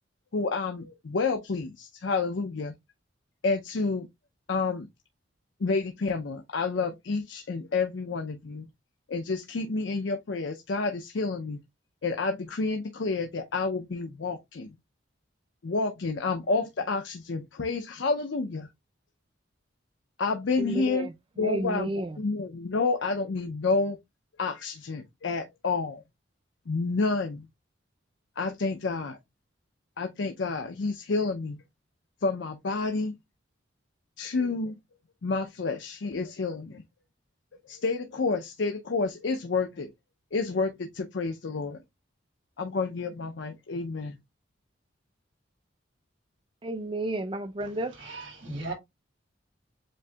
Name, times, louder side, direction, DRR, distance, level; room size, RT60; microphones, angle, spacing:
voice 1, 0.3-2.7 3.4-4.1 4.5-4.9 5.6-8.7 9.1-11.6 12.0-14.7 15.6-18.7 20.2-21.1 21.4-21.9 22.2-24.0 24.4-26.0 26.7-27.5 28.4-29.2 30.0-31.6 32.2-33.1 34.2-34.8 35.2-36.8 37.7-39.9 40.3-41.8 42.6-44.2, left 3 dB, 70° left, 0.5 m, -29 dB
voice 2, 20.6-22.2 46.6-48.0, right 2 dB, 25° right, 0.4 m, -32 dB
voice 3, 48.0-48.7, right 2 dB, 70° right, 1.9 m, -36 dB
7.5 x 2.6 x 2.3 m
head